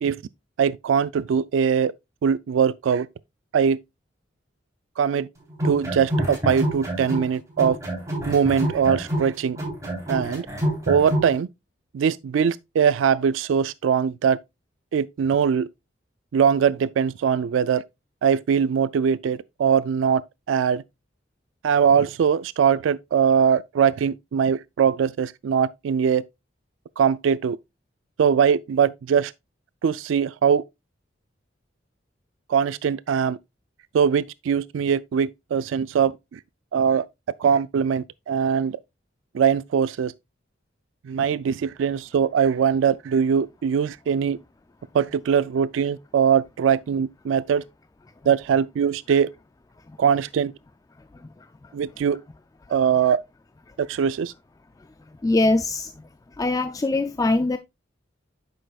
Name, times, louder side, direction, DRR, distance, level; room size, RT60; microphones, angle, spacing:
voice 1, 0.6-1.9 2.2-3.1 3.5-3.8 5.0-5.3 5.6-7.8 8.3-9.6 10.1-10.5 10.9-11.5 11.9-14.4 14.9-15.7 16.3-17.8 18.2-20.2 20.5-20.8 21.6-26.2 27.0-27.6 28.2-29.3 29.8-30.6 32.5-33.4 33.9-36.4 36.7-37.0 37.4-38.8 39.3-40.1 41.0-44.4 44.9-47.6 48.3-49.3 50.0-50.5 51.7-52.2 52.7-53.2 53.8-54.3, right 7 dB, 90° right, 0.3 m, -21 dB
sound 1, 5.5-7.3 7.6-11.3, right 1 dB, 15° right, 3.4 m, -27 dB
voice 2, 55.2-55.9 56.4-57.6, left 2 dB, 20° left, 0.3 m, -22 dB
9.0 x 6.3 x 2.3 m
head